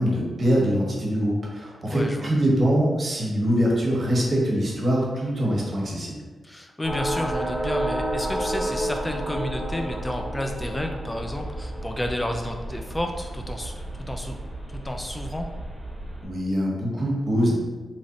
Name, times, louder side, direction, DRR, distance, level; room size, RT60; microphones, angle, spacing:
voice 1, 0.0-6.2 16.2-17.6, equal, 55° right, -3 dB, 1.2 m, -23 dB
voice 2, 1.9-2.3 6.4-14.4 14.7-15.5, left 1 dB, 20° left, 3 dB, 0.3 m, -31 dB
sound 1, 6.8-16.3, right 1 dB, 20° right, 1.3 m, -31 dB
3.1 x 2.6 x 3.8 m, 1.3 s
cardioid pair, 60°, 0 cm